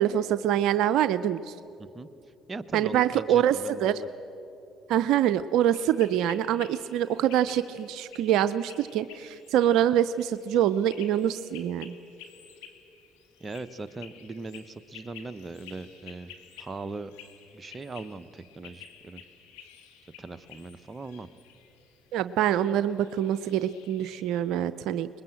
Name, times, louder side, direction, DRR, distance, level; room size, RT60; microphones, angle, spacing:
voice 1, 0.0-1.5 2.7-4.0 4.9-11.9 22.1-25.1, right 11 dB, 75° right, 13 dB, 0.5 m, -25 dB
voice 2, 2.5-4.1 13.4-16.3 16.6-17.1 17.5-19.2 20.0-21.3, right 3 dB, 30° right, 11 dB, 1.0 m, -39 dB
sound 1, 5.6-24.4, left 8 dB, 85° left, 2.0 m, -52 dB
23.0 x 21.0 x 7.8 m, 2.9 s
hypercardioid pair, 60°, 0 cm